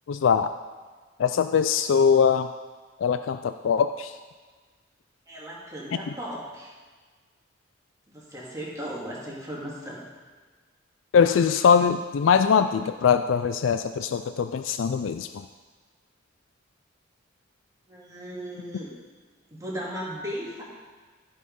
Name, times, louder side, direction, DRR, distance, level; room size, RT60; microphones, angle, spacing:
voice 1, 0.1-0.5 1.2-2.5 3.0-4.1 11.1-15.4, left 6 dB, 80° left, 10 dB, 0.4 m, -22 dB
voice 2, 5.3-6.7 8.1-10.1 17.9-18.9 19.5-20.6, equal, 15° right, -6 dB, 2.5 m, -36 dB
14.5 x 5.4 x 5.4 m, 1.4 s
head